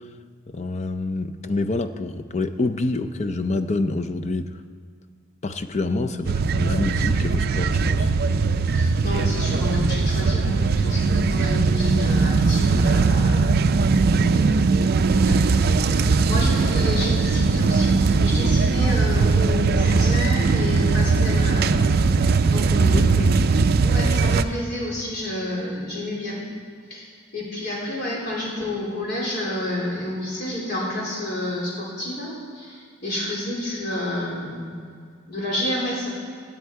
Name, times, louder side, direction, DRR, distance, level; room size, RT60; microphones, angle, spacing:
voice 1, 0.5-4.6 5.4-8.1 22.9-23.4, left 2 dB, 35° left, 9 dB, 0.5 m, -27 dB
sound 1, 6.3-24.4, right 4 dB, 50° right, 0.4 m, -20 dB
voice 2, 8.7-13.5 13.8-13.9 14.1-23.2 23.8-26.4 26.9-34.7 35.3-36.1, left 1 dB, 50° left, -5 dB, 3.8 m, -30 dB
17.0 x 9.0 x 4.6 m, 2.2 s
head